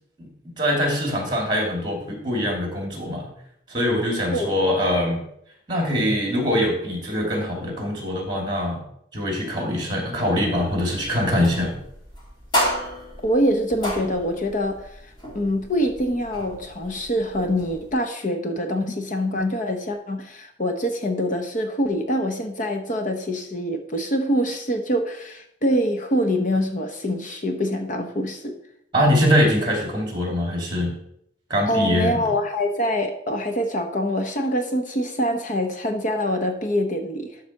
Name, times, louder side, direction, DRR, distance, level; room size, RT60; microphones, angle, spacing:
voice 1, 0.6-3.3 3.7-5.2 5.7-8.8 9.1-11.7 28.9-30.9 31.5-32.2, equal, 25° right, 0 dB, 2.7 m, -23 dB
voice 2, 4.3-4.7 13.2-28.6 31.7-37.4, equal, 40° left, 5 dB, 0.9 m, -25 dB
sound 1, 10.5-17.9, equal, 25° left, 2.6 m, -32 dB
12.0 x 4.2 x 6.4 m, 0.74 s
head